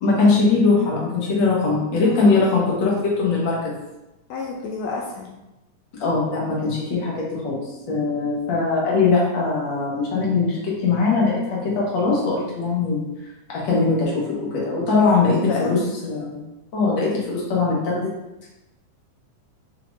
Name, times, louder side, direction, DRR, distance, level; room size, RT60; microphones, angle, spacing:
voice 1, 0.0-3.7 6.0-10.6 10.8-13.0 13.5-16.4 16.7-18.1, left 4 dB, 55° left, -5 dB, 1.4 m, -21 dB
voice 2, 2.0-2.3 4.3-5.3 15.3-15.9, left 3 dB, 90° left, -1 dB, 1.5 m, -29 dB
5.8 x 3.6 x 2.5 m, 0.97 s
omnidirectional pair, 3.6 m